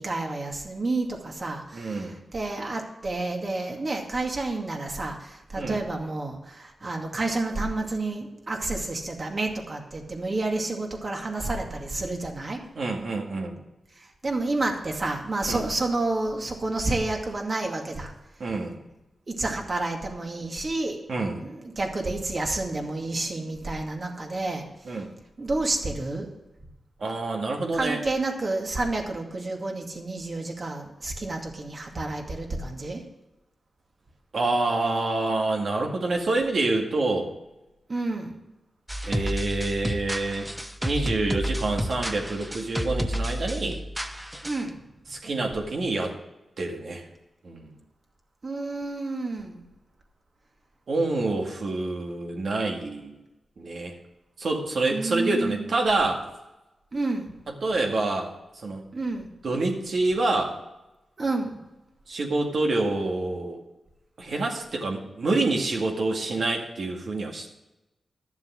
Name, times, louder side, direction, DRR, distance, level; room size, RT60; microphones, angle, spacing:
voice 1, 0.0-12.6 14.0-18.1 19.3-21.0 21.4-24.6 25.4-26.3 27.7-33.0 37.9-38.4 44.4-44.8 48.4-49.6 54.9-55.6 56.9-57.3 58.9-59.3 61.2-61.6, right 2 dB, 45° right, 1 dB, 2.3 m, -30 dB
voice 2, 1.7-2.1 5.6-5.8 12.8-13.6 15.5-15.6 18.4-18.8 21.1-21.4 24.9-25.1 27.0-28.0 34.3-37.3 39.0-40.5 40.8-43.8 45.1-46.1 46.6-47.0 47.4-47.7 50.9-53.2 53.6-54.0 54.4-56.2 57.5-58.8 59.4-60.6 62.1-63.6 64.2-67.5, right 2 dB, 70° right, 1 dB, 2.1 m, -27 dB
sound 1, 38.9-44.7, equal, 5° right, 1.0 m, -31 dB
12.0 x 7.3 x 6.4 m, 0.99 s
cardioid pair, 65°, 0 cm